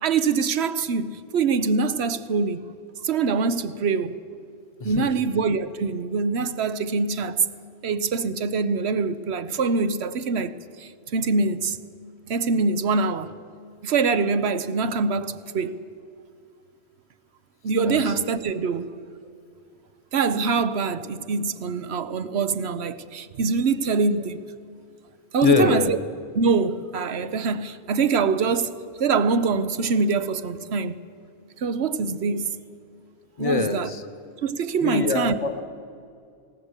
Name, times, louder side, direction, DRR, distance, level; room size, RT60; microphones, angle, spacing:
voice 1, 0.0-2.6 3.0-4.2 4.8-7.5 7.8-11.8 12.3-13.3 13.8-15.8 17.6-18.9 20.1-24.4 25.3-26.0 26.3-31.0 31.6-32.5 33.4-33.9 34.4-35.4, right 4 dB, 70° right, 1.1 m, -24 dB
voice 2, 17.8-18.1 25.4-26.0 33.4-34.1 34.8-35.6, left 4 dB, 30° left, 1.2 m, -24 dB
19.0 x 19.0 x 8.1 m
omnidirectional pair, 1.1 m